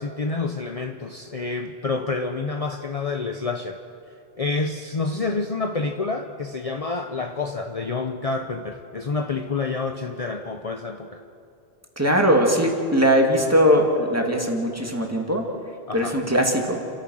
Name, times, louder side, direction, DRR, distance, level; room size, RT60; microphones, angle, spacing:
voice 1, 0.0-3.8 4.4-11.2 15.9-16.2, left 3 dB, 40° left, 5 dB, 0.8 m, -28 dB
voice 2, 12.0-15.5 15.9-16.8, equal, 15° right, 1 dB, 2.3 m, -20 dB
29.5 x 14.0 x 6.4 m, 2.6 s
omnidirectional pair, 1.1 m